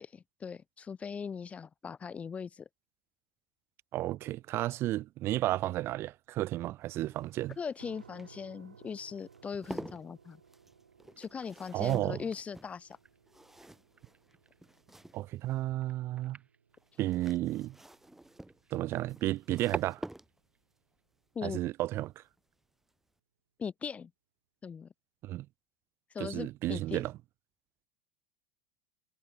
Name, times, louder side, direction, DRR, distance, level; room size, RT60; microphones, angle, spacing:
voice 1, 0.0-2.7 7.6-10.4 11.2-13.0 21.4-21.6 23.6-24.1 24.6-24.9 26.1-27.0, left 6 dB, 20° left, 0.4 m, -40 dB
voice 2, 3.9-7.6 11.7-12.2 15.1-16.4 17.0-17.8 18.7-20.0 21.4-22.2 25.2-25.5 26.2-27.1, right 15 dB, 40° right, 0.4 m, -32 dB
sound 1, 6.8-15.6 16.8-20.7 22.3-22.6 22.9-23.0, right 1 dB, 5° right, 0.9 m, -50 dB
sound 2, 7.8-20.6, right 6 dB, 90° right, 5.3 m, -61 dB
sound 3, 9.0-21.0, right 5 dB, 20° right, 1.9 m, -51 dB
hypercardioid pair, 90°, 6 cm